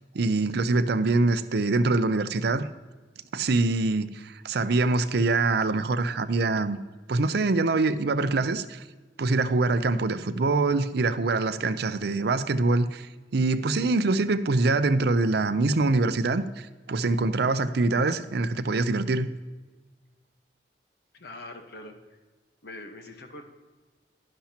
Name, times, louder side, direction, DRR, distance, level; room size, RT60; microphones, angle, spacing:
voice 1, 0.1-2.7 3.3-6.8 7.1-8.8 9.2-13.1 13.3-19.3, right 3 dB, 65° right, 13 dB, 0.5 m, -24 dB
voice 2, 21.1-22.0 22.6-23.4, left 2 dB, 65° left, 5 dB, 1.2 m, -42 dB
11.5 x 11.5 x 2.9 m, 1.3 s
head